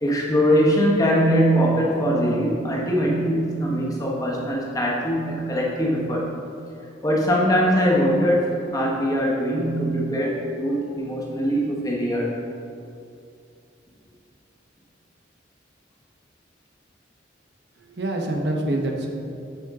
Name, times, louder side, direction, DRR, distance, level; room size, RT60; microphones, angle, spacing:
voice 1, 0.0-6.3 7.0-12.3, equal, 20° left, -3 dB, 1.0 m, -22 dB
voice 2, 17.8-19.1, right 1 dB, 60° right, 1 dB, 0.9 m, -26 dB
9.2 x 4.5 x 3.6 m, 2.6 s
head